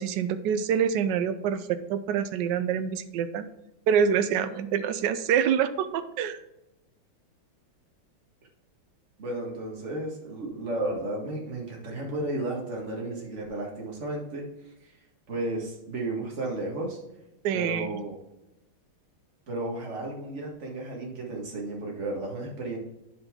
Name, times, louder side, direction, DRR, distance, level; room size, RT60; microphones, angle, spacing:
voice 1, 0.0-3.5 3.9-6.4 17.4-17.9, right 8 dB, 70° right, 11 dB, 1.1 m, -26 dB
voice 2, 9.2-14.5 15.3-17.0 17.5-18.2 19.5-22.8, right 2 dB, 35° right, -1 dB, 2.0 m, -33 dB
9.7 x 5.4 x 3.7 m, 0.90 s
omnidirectional pair, 2.3 m